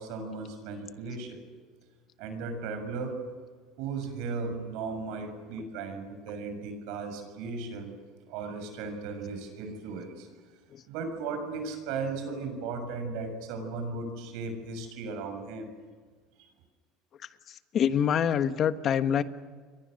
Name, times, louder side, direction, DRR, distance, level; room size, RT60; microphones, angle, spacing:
voice 1, 0.0-1.4 2.2-3.2 3.8-7.9 8.3-10.3 10.9-15.7 16.4-16.5, right 4 dB, 75° right, 6 dB, 7.0 m, -36 dB
voice 2, 17.7-19.2, left 8 dB, 40° left, 10 dB, 1.3 m, -25 dB
30.0 x 23.0 x 6.6 m, 1.5 s
supercardioid pair, 125°, 0 cm